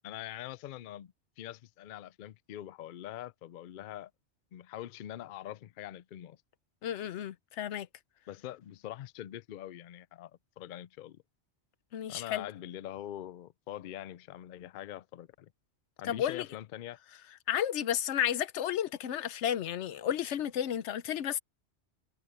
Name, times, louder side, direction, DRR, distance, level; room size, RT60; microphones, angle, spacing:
voice 1, 0.0-4.1 4.5-6.4 8.3-11.2 12.1-15.5 16.0-17.0, left 12 dB, 60° left, 0.6 m, -44 dB
voice 2, 6.8-7.9 11.9-12.5 16.0-16.5 17.5-21.4, left 10 dB, 85° left, 1.0 m, -32 dB
omnidirectional pair, 1.2 m